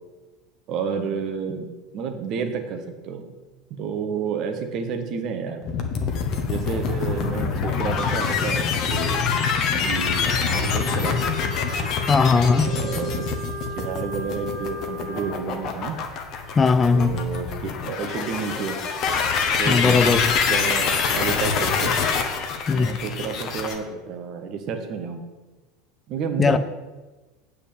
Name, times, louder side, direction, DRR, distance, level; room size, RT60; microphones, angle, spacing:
voice 1, 0.7-3.2 3.7-5.6 6.5-9.2 9.7-11.2 12.6-13.4 13.7-15.9 16.9-18.8 19.6-20.2 20.5-21.9 22.7-25.2 26.1-26.6, right 6 dB, 45° right, 1.4 m, -30 dB
sound 1, 5.6-23.7, left 6 dB, 45° left, 1.3 m, -25 dB
Wind instrument woodwind instrument, 10.6-15.4, right 2 dB, 85° right, 1.1 m, -36 dB
voice 2, 12.1-12.7 16.6-17.2 19.7-20.3 22.7-23.0 26.4-26.6, left 4 dB, 20° left, 0.4 m, -19 dB
8.5 x 4.9 x 7.4 m
figure-of-eight pair, 80°, 0 cm